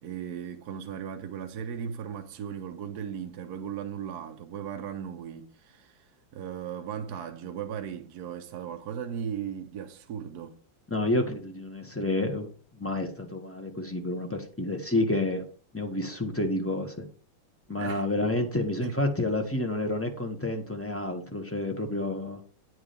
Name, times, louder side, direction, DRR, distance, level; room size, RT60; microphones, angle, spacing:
voice 1, 0.0-10.6 17.8-18.1 18.8-19.0, right 8 dB, 65° right, 1.1 m, -37 dB
voice 2, 10.9-12.5 12.8-15.4 15.7-17.0 17.7-22.4, left 1 dB, 10° left, 0.7 m, -29 dB
9.1 x 4.8 x 5.0 m
omnidirectional pair, 2.1 m